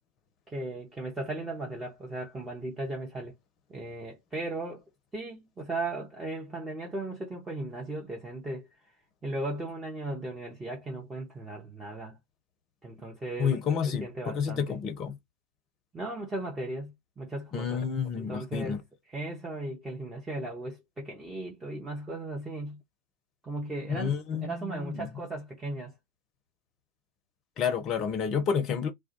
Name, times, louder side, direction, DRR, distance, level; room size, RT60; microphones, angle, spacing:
voice 1, 0.5-3.4 3.7-4.8 5.1-8.7 9.2-12.2 12.8-13.6 13.8-14.8 15.9-17.8 18.1-18.8 19.1-22.8 23.4-25.9, right 2 dB, 15° right, 0.7 m, -37 dB
voice 2, 13.4-15.1 17.5-18.8 23.9-25.1 27.6-28.9, left 7 dB, 35° left, 0.6 m, -30 dB
2.2 x 2.1 x 2.7 m
figure-of-eight pair, 90°, 0 cm